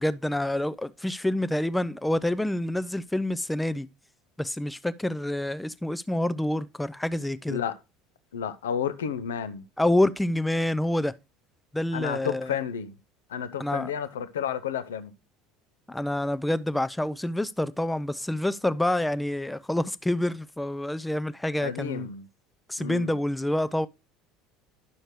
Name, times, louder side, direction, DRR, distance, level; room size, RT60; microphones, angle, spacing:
voice 1, 0.0-3.9 4.4-7.6 9.8-11.1 11.7-12.5 13.6-13.9 15.9-22.1 22.7-23.9, left 1 dB, 5° left, 0.4 m, -27 dB
voice 2, 8.3-9.6 11.9-12.9 13.3-15.1 21.6-22.3 22.8-23.1, left 8 dB, 75° left, 0.5 m, -31 dB
10.0 x 6.4 x 3.0 m
figure-of-eight pair, 70°, 0 cm